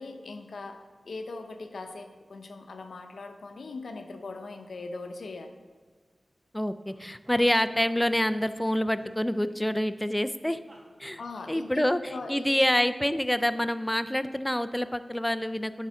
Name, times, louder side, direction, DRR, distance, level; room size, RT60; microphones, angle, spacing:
voice 1, 0.0-5.6 11.2-12.6, left 3 dB, 85° left, 6 dB, 0.5 m, -40 dB
voice 2, 6.5-10.6 11.0-11.2 11.5-12.0 12.3-15.9, left 1 dB, 10° left, 11 dB, 0.3 m, -27 dB
sound 1, 6.9-8.6 9.0-10.0 10.7-11.8 12.1-12.2, right 1 dB, 45° right, 1.4 m, -55 dB
9.2 x 3.6 x 5.2 m, 1.4 s
wide cardioid pair, 65°, 0 cm